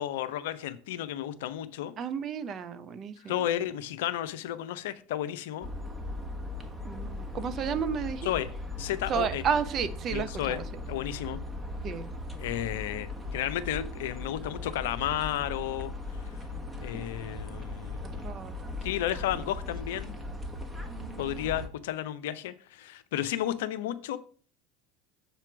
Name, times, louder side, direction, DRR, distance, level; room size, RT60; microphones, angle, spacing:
voice 1, 0.0-1.9 3.3-5.7 8.2-8.5 8.8-9.4 10.1-10.6 10.9-11.4 12.4-15.9 16.8-18.3 18.8-20.1 21.2-24.2, left 12 dB, 70° left, 0.6 m, -32 dB
voice 2, 2.0-3.5 6.8-8.3 9.1-10.6 11.8-12.1 16.9-17.1 18.2-18.5 20.9-21.5, right 7 dB, 40° right, 0.7 m, -32 dB
sound 1, 5.6-21.7, left 2 dB, 10° right, 1.3 m, -38 dB
6.9 x 4.4 x 5.9 m
hypercardioid pair, 75°, 0 cm